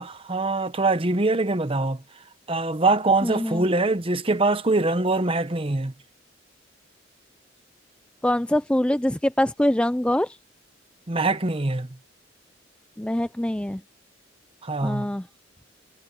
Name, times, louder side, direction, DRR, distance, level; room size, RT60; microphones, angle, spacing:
voice 1, 0.0-2.0 2.5-5.9 11.1-11.9 14.6-15.1, right 2 dB, 30° right, 1.0 m, -23 dB
voice 2, 3.2-3.7 8.2-10.4 13.0-13.8 14.8-15.2, left 1 dB, 5° left, 0.4 m, -24 dB
head